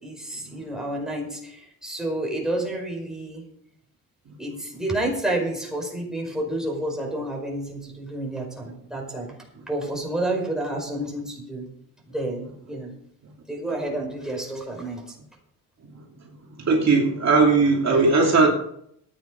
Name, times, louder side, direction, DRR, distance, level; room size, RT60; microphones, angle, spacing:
voice 1, 0.0-3.5 4.4-9.3 9.7-11.7 12.1-12.9 13.5-15.0, right 1 dB, ahead, 0 dB, 5.1 m, -30 dB
voice 2, 16.6-18.5, right 4 dB, 50° right, -1 dB, 2.8 m, -18 dB
13.5 x 9.7 x 5.3 m, 0.70 s
cardioid pair, 105°, 35 cm